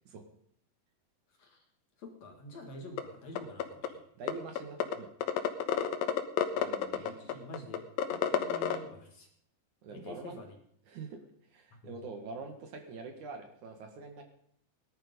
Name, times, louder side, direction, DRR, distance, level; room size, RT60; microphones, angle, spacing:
voice 1, 2.0-4.0 6.9-9.3 9.9-10.6 11.8-11.9, left 1 dB, 50° left, 3 dB, 2.8 m, -47 dB
sound 1, 3.0-3.1 3.4-3.9 4.3-4.4 4.6-4.9 5.2-8.8, left 10 dB, 75° left, 2.8 m, -29 dB
voice 2, 4.2-5.1 6.5-7.2 9.8-10.4 10.8-11.2 11.5-14.2, right 4 dB, 60° right, 5 dB, 2.8 m, -45 dB
18.5 x 11.5 x 5.3 m, 0.66 s
omnidirectional pair, 4.3 m